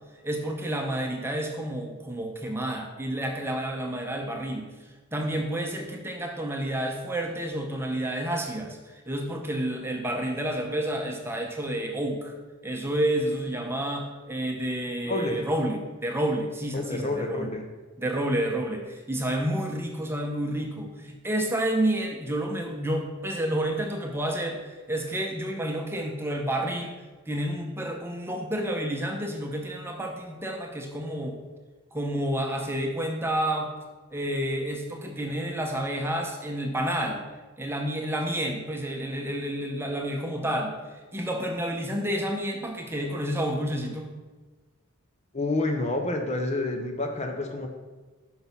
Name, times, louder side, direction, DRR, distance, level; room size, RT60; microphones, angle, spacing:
voice 1, 0.2-4.7 5.1-12.3 12.6-17.5 18.0-27.0 27.3-31.4 31.9-33.7 34.1-37.2 37.6-44.1, right 1 dB, 10° right, 2 dB, 0.8 m, -30 dB
voice 2, 15.0-15.5 16.7-17.6 45.3-47.7, left 2 dB, 30° left, 4 dB, 0.7 m, -28 dB
6.1 x 6.0 x 5.4 m, 1.3 s
head